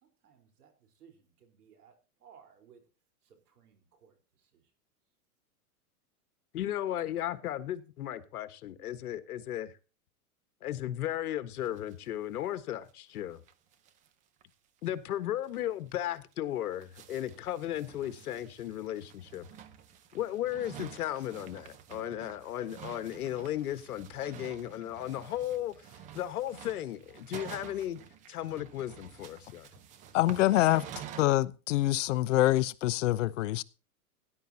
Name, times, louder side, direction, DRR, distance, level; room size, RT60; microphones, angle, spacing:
voice 1, 0.0-2.8 3.2-4.6, right 7 dB, 80° right, 4.2 m, -60 dB
voice 2, 6.5-9.7 10.6-13.4 14.8-19.5 20.1-25.9 26.1-28.0 28.3-29.7, left 12 dB, 75° left, 1.5 m, -35 dB
sound 1, 11.6-12.1 12.4-12.5 12.7-12.8 13.2-13.3 13.5-14.1 14.4-14.5 14.8-14.9 15.4-15.6 16.2-31.2, right 9 dB, 15° right, 0.6 m, -49 dB
voice 3, 30.1-30.8 31.2-33.6, left 16 dB, 55° left, 0.7 m, -25 dB
18.0 x 11.0 x 2.8 m
supercardioid pair, 150°, 45 cm